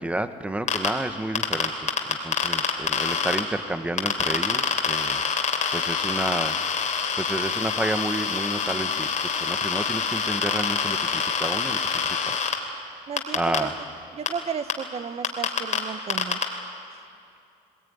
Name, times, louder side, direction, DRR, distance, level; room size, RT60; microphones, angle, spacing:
voice 1, 0.0-5.5 5.7-6.9 7.2-12.5 13.0-13.8, right 1 dB, 5° right, 10 dB, 1.1 m, -31 dB
sound 1, 0.7-0.9 1.4-3.4 4.0-12.5 13.2-13.6 14.3-14.4 14.7-14.8 15.2-15.8 16.1-16.4, left 6 dB, 45° left, 3.0 m, -25 dB
voice 2, 13.1-13.7 14.1-16.4, right 7 dB, 40° right, 13 dB, 0.9 m, -33 dB
20.5 x 20.0 x 9.5 m, 2.5 s
cardioid pair, 110°, 17 cm